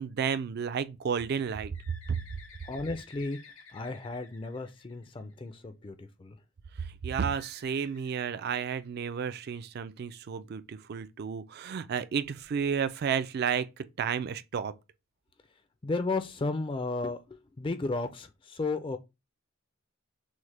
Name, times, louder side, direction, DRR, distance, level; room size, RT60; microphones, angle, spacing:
voice 1, 0.0-1.7 2.1-2.2 6.8-14.7, right 7 dB, 50° right, 0.3 m, -32 dB
Bird, 1.7-5.5 7.2-9.0, left 5 dB, 75° left, 0.8 m, -54 dB
voice 2, 2.7-3.4 3.7-6.4 15.8-19.0, left 3 dB, 25° left, 0.4 m, -34 dB
6.2 x 2.1 x 3.3 m
head